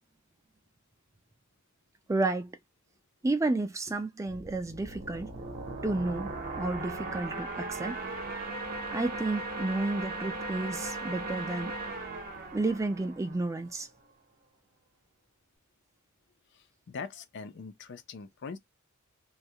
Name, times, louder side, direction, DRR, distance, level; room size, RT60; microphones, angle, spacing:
voice 1, 2.1-2.6 3.2-5.3 5.8-8.0 8.9-11.7 12.5-13.9, right 2 dB, 15° right, 0.3 m, -31 dB
sound 1, 4.3-13.8, right 2 dB, 45° right, 0.7 m, -38 dB
voice 2, 16.9-18.6, left 5 dB, 55° left, 0.4 m, -41 dB
2.3 x 2.1 x 2.6 m
head